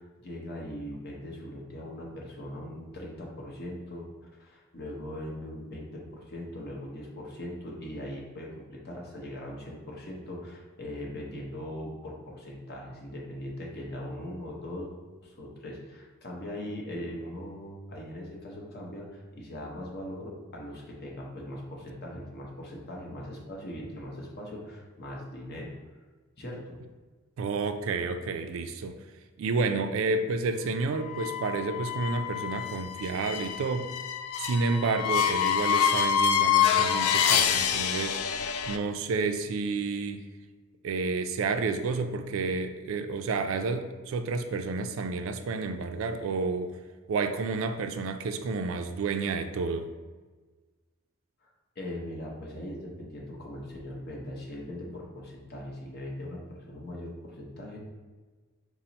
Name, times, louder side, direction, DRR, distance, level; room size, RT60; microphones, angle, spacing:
voice 1, 0.0-4.1 4.4-14.9 15.2-25.7 26.4-26.8 51.4-51.5 51.8-57.8, left 1 dB, 50° left, -2 dB, 0.8 m, -40 dB
voice 2, 27.4-29.0 29.4-33.9 34.4-38.2 38.7-40.3 40.8-46.7 47.1-49.9, right 4 dB, 65° right, 7 dB, 0.3 m, -30 dB
sound 1, 31.1-38.8, left 8 dB, 85° left, 0.3 m, -27 dB
4.2 x 2.0 x 4.0 m, 1.3 s
head